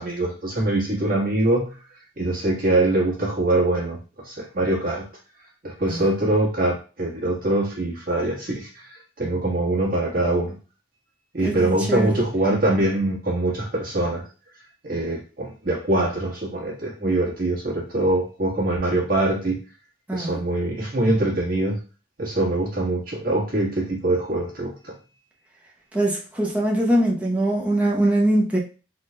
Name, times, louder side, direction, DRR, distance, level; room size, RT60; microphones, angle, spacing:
voice 1, 0.0-1.7 2.2-4.0 4.2-5.1 5.6-10.6 11.3-14.2 14.8-19.6 20.1-21.8 22.2-24.9, right 1 dB, 45° right, 1.4 m, -23 dB
voice 2, 11.4-12.2 20.1-20.4 25.9-28.6, right 1 dB, 10° right, 0.8 m, -22 dB
3.8 x 3.6 x 2.2 m
head